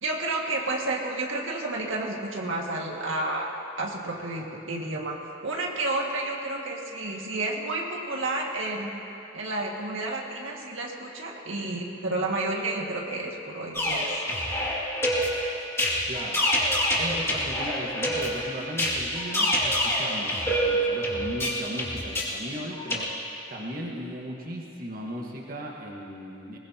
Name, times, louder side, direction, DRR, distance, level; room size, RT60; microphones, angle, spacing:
voice 1, 0.0-8.9 9.3-14.2, right 2 dB, 85° right, -1 dB, 1.9 m, -31 dB
sound 1, 13.7-23.0, equal, 15° left, 2.3 m, -27 dB
voice 2, 16.1-16.5 17.0-23.2 23.5-26.6, equal, 45° right, -2 dB, 1.5 m, -37 dB
21.5 x 20.0 x 2.9 m, 2.8 s
head